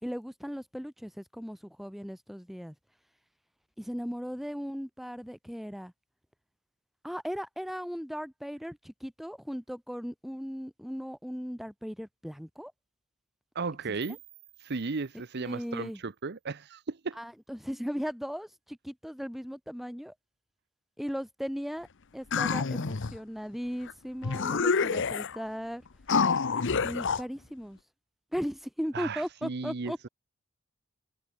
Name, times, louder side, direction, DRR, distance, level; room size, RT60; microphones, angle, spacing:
voice 1, 0.0-2.7 3.8-5.9 7.0-12.7 15.4-16.0 17.2-20.1 21.0-21.9 22.1-25.8 26.8-27.8 28.3-30.1, equal, ahead, 2.5 m, -37 dB
voice 2, 13.5-14.2 14.6-17.2 28.9-29.9, right 4 dB, 50° right, 0.8 m, -35 dB
sound 1, 14.0-16.9, right 20 dB, 65° right, 4.4 m, -58 dB
sound 2, 22.3-23.2 23.9-24.0 24.2-25.4 26.1-27.2, left 5 dB, 60° left, 0.8 m, -27 dB
head